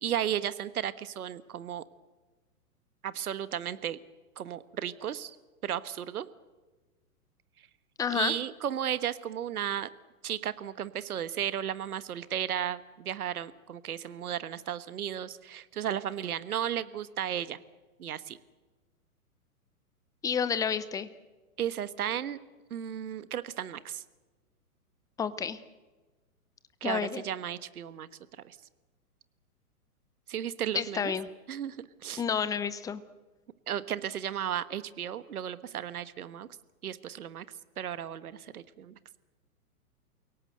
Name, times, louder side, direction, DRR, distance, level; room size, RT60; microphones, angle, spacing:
voice 1, 0.0-1.8 3.0-4.0 4.4-5.4 5.6-6.3 8.1-9.9 10.2-17.6 18.0-18.4 21.6-22.4 22.7-24.0 26.8-28.1 28.4-28.6 30.3-31.1 31.5-32.2 33.7-36.5 36.8-37.4 37.8-38.9, right 10 dB, 70° right, 15 dB, 1.3 m, -34 dB
voice 2, 8.0-8.3 20.2-21.1 25.2-25.6 26.8-27.2 30.7-31.3 32.2-33.0, left 7 dB, 10° left, 14 dB, 0.7 m, -30 dB
29.0 x 18.0 x 7.9 m, 1.3 s
hypercardioid pair, 120°, 46 cm